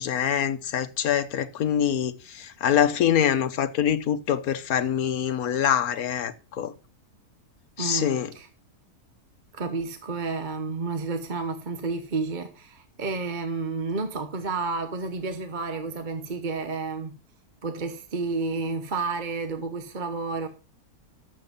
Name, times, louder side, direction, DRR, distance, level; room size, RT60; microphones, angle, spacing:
voice 1, 0.0-6.7 7.8-8.3, left 9 dB, 70° left, 1.4 m, -25 dB
voice 2, 7.8-8.5 9.5-17.1 17.6-20.5, right 4 dB, 35° right, 1.0 m, -31 dB
11.5 x 7.8 x 5.3 m
omnidirectional pair, 1.7 m